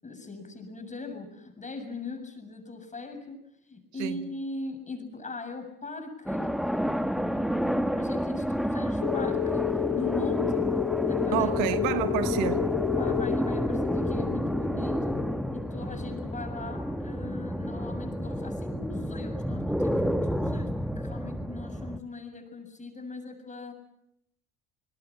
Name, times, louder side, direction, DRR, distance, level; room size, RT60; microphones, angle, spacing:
voice 1, 0.0-10.7 11.1-11.5 11.9-12.0 12.9-15.1 15.5-23.7, left 3 dB, 25° left, 7.3 m, -40 dB
sound 1, 6.3-22.0, equal, ahead, 1.2 m, -30 dB
sound 2, 9.0-17.3, left 16 dB, 75° left, 0.9 m, -31 dB
voice 2, 11.3-12.7, right 13 dB, 85° right, 1.5 m, -29 dB
27.0 x 21.0 x 7.4 m
supercardioid pair, 90°, 31 cm